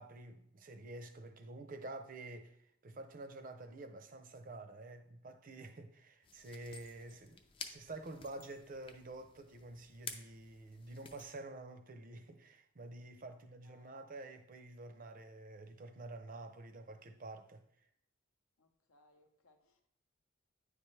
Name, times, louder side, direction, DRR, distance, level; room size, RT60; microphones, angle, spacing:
voice 1, 0.0-17.7, right 2 dB, 40° right, 0.5 m, -49 dB
sound 1, 6.2-11.3, left 5 dB, 25° left, 0.4 m, -52 dB
voice 2, 13.2-14.0 18.6-19.9, left 2 dB, 75° left, 0.7 m, -70 dB
9.5 x 3.3 x 3.2 m
head